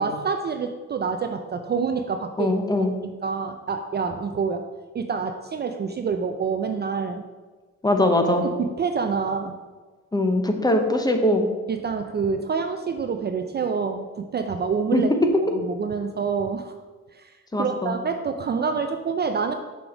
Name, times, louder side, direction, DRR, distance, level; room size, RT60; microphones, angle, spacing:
voice 1, 0.0-2.5 2.9-4.6 4.9-7.3 8.4-9.6 11.7-15.1 15.5-16.7 17.1-17.3 17.6-19.5, right 5 dB, 35° right, 6 dB, 0.4 m, -27 dB
voice 2, 2.4-2.9 7.8-8.4 10.1-11.5 14.9-15.0 17.5-17.9, left 1 dB, 15° left, 5 dB, 0.8 m, -21 dB
6.0 x 3.6 x 5.8 m, 1.3 s
cardioid pair, 90°, 30 cm